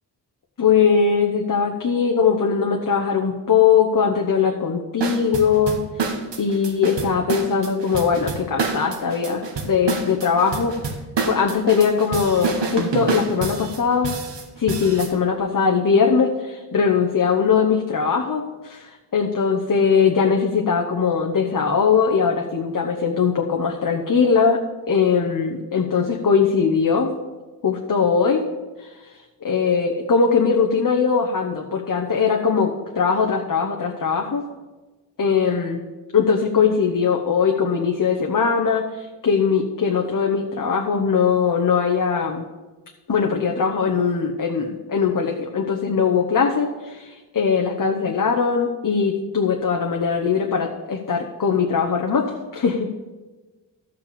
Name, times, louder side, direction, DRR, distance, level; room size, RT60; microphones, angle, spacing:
voice 1, 0.6-5.8 6.4-10.8 11.3-14.2 14.6-27.1 27.6-28.4 28.8-28.9 29.4-34.5 35.2-35.8 36.1-42.5 43.1-52.9, left 6 dB, 50° left, 1 dB, 1.0 m, -20 dB
sound 1, 5.0-15.1, right 4 dB, 80° right, 1.3 m, -27 dB
13.0 x 4.9 x 6.9 m, 1.2 s
wide cardioid pair, 80°, 42 cm